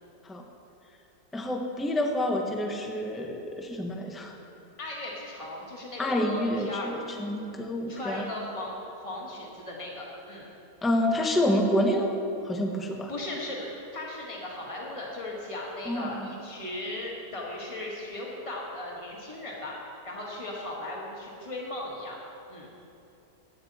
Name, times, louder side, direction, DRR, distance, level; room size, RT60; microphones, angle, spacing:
voice 1, 1.3-4.3 6.0-8.3 10.8-12.2 12.4-13.1 15.8-16.3, left 1 dB, ahead, 2 dB, 0.6 m, -28 dB
voice 2, 4.8-6.9 7.9-10.5 13.1-22.2 22.5-22.7, left 1 dB, 20° left, -3 dB, 1.8 m, -37 dB
16.0 x 9.2 x 4.2 m, 2.8 s
omnidirectional pair, 1.7 m